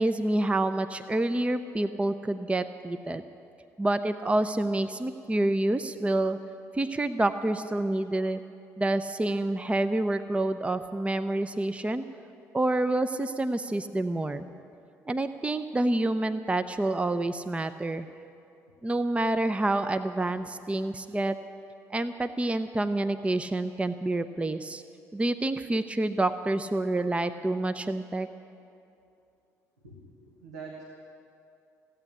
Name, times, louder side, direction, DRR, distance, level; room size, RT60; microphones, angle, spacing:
voice 1, 0.0-3.2 3.8-6.4 6.7-8.4 8.8-12.1 12.5-14.5 15.1-18.1 18.8-21.4 21.9-24.8 25.1-28.3, right 2 dB, 15° right, 11 dB, 0.6 m, -28 dB
voice 2, 29.8-30.8, right 4 dB, 90° right, -1 dB, 1.2 m, -44 dB
15.5 x 8.9 x 10.0 m, 2.6 s
figure-of-eight pair, 50°, 9 cm